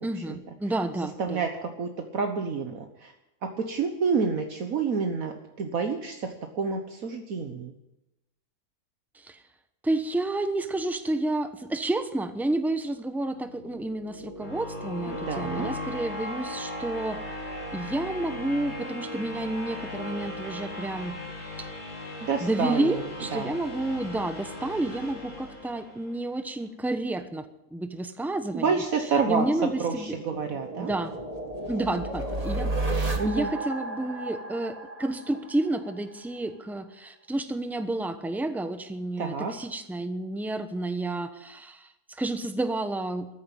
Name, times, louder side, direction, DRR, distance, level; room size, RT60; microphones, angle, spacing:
voice 1, 0.0-1.4 9.2-9.4 9.8-17.2 17.7-21.1 21.6-21.7 22.4-27.5 27.7-28.7 29.3-30.2 30.8-31.1 31.7-43.3, right 2 dB, ahead, 9 dB, 0.7 m, -30 dB
voice 2, 1.2-3.1 3.4-7.7 15.3-15.7 22.2-23.0 23.3-23.5 28.5-29.5 29.8-30.9 33.2-33.5 39.2-39.5, right 5 dB, 65° right, 4 dB, 1.6 m, -29 dB
sound 1, 13.3-26.3, left 1 dB, 65° left, 4.6 m, -38 dB
sound 2, 29.2-36.0, right 2 dB, 25° right, 1.9 m, -33 dB
14.0 x 10.5 x 9.1 m, 0.92 s
omnidirectional pair, 1.6 m